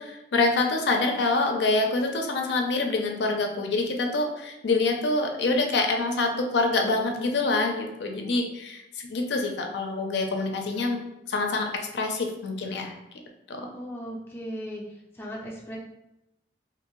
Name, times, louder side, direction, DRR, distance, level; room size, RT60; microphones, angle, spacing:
voice 1, 0.0-11.0 11.3-12.9 13.5-13.7, left 3 dB, 70° left, 3 dB, 0.4 m, -26 dB
voice 2, 13.7-14.8 15.1-15.8, equal, 10° left, -4 dB, 0.4 m, -37 dB
2.6 x 2.6 x 3.0 m, 0.91 s
head